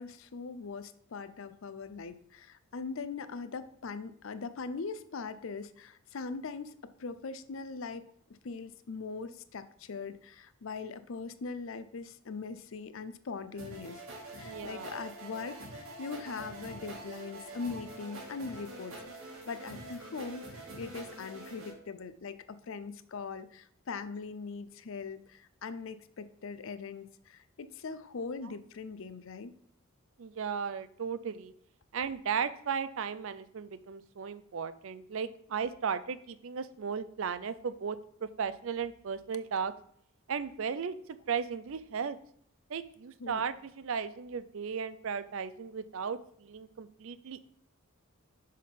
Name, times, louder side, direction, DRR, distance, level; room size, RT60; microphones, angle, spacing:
voice 1, 0.0-14.0 14.3-18.9 19.5-29.5 43.2-43.5, left 4 dB, 65° left, 13 dB, 0.5 m, -41 dB
sound 1, 13.6-21.7, right 2 dB, 80° right, 2.0 m, -45 dB
voice 2, 14.4-14.9 30.2-31.5 31.9-39.7 40.3-40.9 41.3-42.2 42.7-47.4, right 6 dB, 65° right, 14 dB, 0.5 m, -36 dB
6.4 x 3.7 x 5.7 m, 0.64 s
head